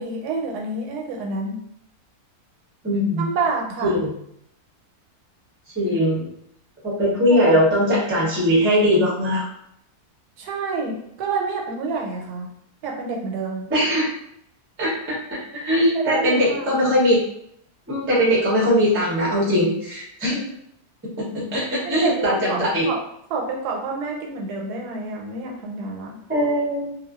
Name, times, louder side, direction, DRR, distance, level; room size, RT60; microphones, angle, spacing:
voice 1, 0.0-1.6 3.2-4.0 7.3-7.6 10.4-12.5 12.8-13.7 15.8-16.8 21.8-23.0 23.3-26.2, right 4 dB, 90° right, 1 dB, 1.1 m, -28 dB
voice 2, 2.8-3.2 3.8-4.1 5.8-6.3 6.8-9.4 13.7-14.1 14.8-17.2 17.9-20.5 21.2-22.9 26.3-27.0, equal, 15° right, -6 dB, 0.5 m, -20 dB
2.5 x 2.2 x 2.3 m, 0.72 s
omnidirectional pair, 1.6 m